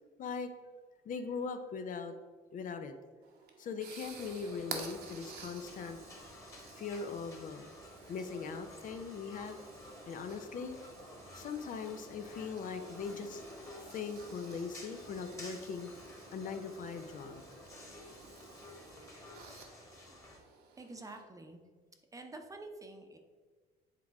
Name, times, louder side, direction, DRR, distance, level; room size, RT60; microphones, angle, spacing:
voice 1, 0.2-0.5 1.1-2.1 2.5-2.9 3.6-6.0 6.7-7.7 8.1-9.6 10.0-10.8 11.3-15.9 16.3-17.4, left 5 dB, 50° left, 7 dB, 0.6 m, -40 dB
sound 1, 3.2-21.2, right 5 dB, 70° right, 1.1 m, -52 dB
sound 2, 4.0-20.4, left 2 dB, 15° left, 1.5 m, -53 dB
voice 2, 20.8-21.6 22.1-23.2, right 2 dB, 20° right, 5 dB, 0.8 m, -48 dB
8.5 x 3.6 x 4.6 m, 1.4 s
cardioid pair, 110°, 17 cm